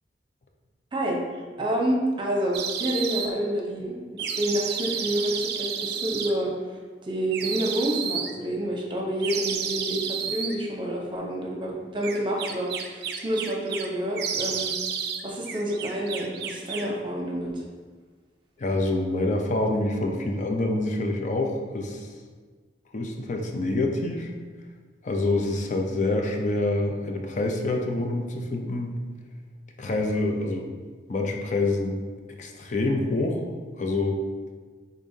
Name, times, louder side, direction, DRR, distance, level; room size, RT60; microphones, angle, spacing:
voice 1, 0.9-14.7 15.2-17.6, right 1 dB, 30° right, -1 dB, 0.8 m, -28 dB
sound 1, 2.5-3.3 4.2-6.3 7.3-8.3 9.2-10.5 12.0-13.9 14.2-15.2 15.5-16.9, right 7 dB, 60° right, 0.4 m, -31 dB
voice 2, 18.6-22.1 22.9-24.3 25.0-28.9 29.8-30.7 31.1-32.0 32.4-33.4 33.8-34.2, left 2 dB, 45° left, 3 dB, 0.5 m, -26 dB
5.3 x 3.7 x 2.7 m, 1.5 s
head